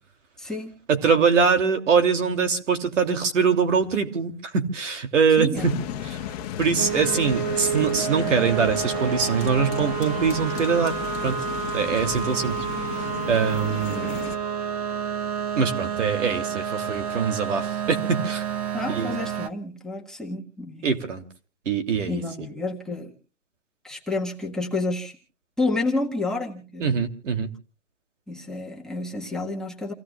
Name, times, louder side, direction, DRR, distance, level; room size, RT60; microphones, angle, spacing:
voice 1, 0.4-0.7 5.4-5.7 18.7-21.0 22.1-23.1 23.8-25.2 25.6-27.0 28.3-29.9, left 2 dB, ahead, -3 dB, 1.5 m, -30 dB
voice 2, 0.9-5.7 6.0-6.2 6.6-11.0 11.2-11.4 11.7-12.6 12.9-14.2 15.5-18.5 18.9-19.2 20.8-21.2 21.6-22.2 26.8-27.5, right 6 dB, 80° right, 7 dB, 3.1 m, -23 dB
sound 1, 5.6-14.4, left 11 dB, 30° left, 1.2 m, -34 dB
sound 2, 6.8-19.5, right 8 dB, 30° right, 0.9 m, -29 dB
29.0 x 17.0 x 2.4 m, 0.36 s
hypercardioid pair, 160°, 37 cm